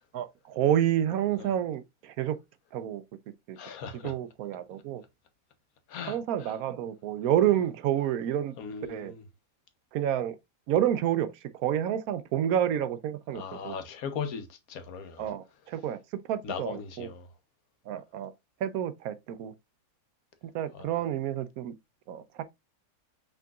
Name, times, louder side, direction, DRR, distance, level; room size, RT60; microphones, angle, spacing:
voice 1, 0.1-2.4 2.7-3.0 3.5-3.6 4.0-5.0 6.1-8.5 8.9-9.1 9.9-10.4 10.7-13.8 15.2-16.0 16.3-17.1 17.9-18.3 18.6-19.5 20.5-21.7 22.1-22.2, right 11 dB, 80° right, 1.0 m, -29 dB
voice 2, 3.6-4.1 5.9-6.5 8.6-9.2 13.3-15.3 16.4-17.3 20.7-20.9, left 6 dB, 80° left, 1.3 m, -38 dB
6.0 x 3.8 x 2.3 m
omnidirectional pair, 1.5 m